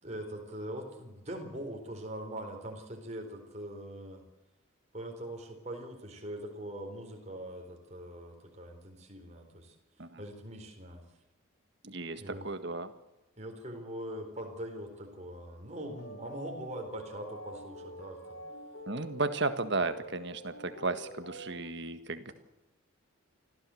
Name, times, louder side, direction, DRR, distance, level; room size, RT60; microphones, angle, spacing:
voice 1, 0.0-4.2 4.9-9.7 10.2-11.1 12.2-12.5 13.4-18.4, right 1 dB, 30° right, 3 dB, 4.2 m, -42 dB
voice 2, 11.8-12.9 18.9-22.3, right 3 dB, 55° right, 10 dB, 1.7 m, -34 dB
sound 1, 15.7-21.6, equal, 75° left, 4.1 m, -47 dB
25.5 x 15.5 x 7.8 m, 1.0 s
head